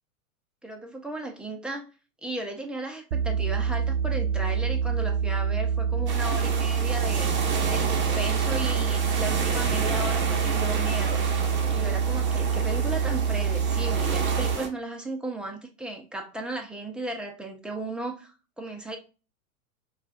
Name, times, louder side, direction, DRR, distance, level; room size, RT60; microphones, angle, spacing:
voice 1, 0.6-1.9 2.2-7.3 7.7-11.2 11.7-19.0, right 2 dB, ahead, 0.5 m, -35 dB
sound 1, 3.1-14.6, right 6 dB, 75° right, 0.5 m, -26 dB
sound 2, 6.1-14.7, right 5 dB, 25° right, 0.9 m, -31 dB
5.5 x 2.4 x 2.4 m
hypercardioid pair, 105°, 43 cm